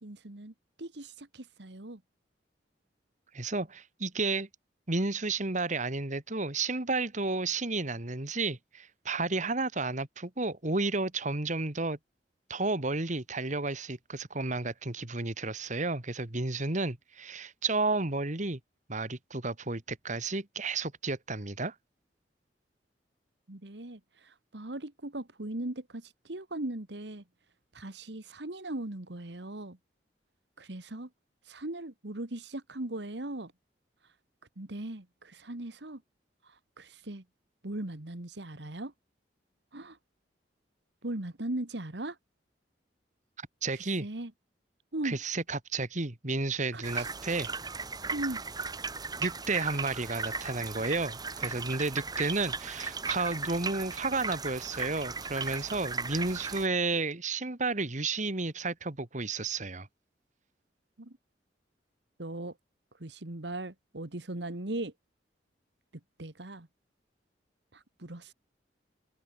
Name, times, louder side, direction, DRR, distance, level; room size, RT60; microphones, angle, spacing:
voice 1, 0.0-2.0 23.5-27.2 27.7-29.8 30.6-31.1 31.5-33.5 34.6-36.0 36.4-37.2 37.6-38.9 39.7-40.0 41.0-42.2 43.7-44.3 44.9-45.2 46.7-47.1 48.1-48.4 61.0-61.2 62.2-62.6 63.0-64.9 66.2-66.7 67.7-68.3, right 1 dB, 65° right, 1.8 m, -39 dB
voice 2, 3.3-4.5 4.9-12.0 12.5-18.6 18.9-21.7 43.4-44.1 45.0-47.5 49.2-59.9, right 3 dB, 40° right, 2.1 m, -32 dB
sound 1, 46.8-56.7, right 4 dB, 20° right, 1.4 m, -37 dB
open air
head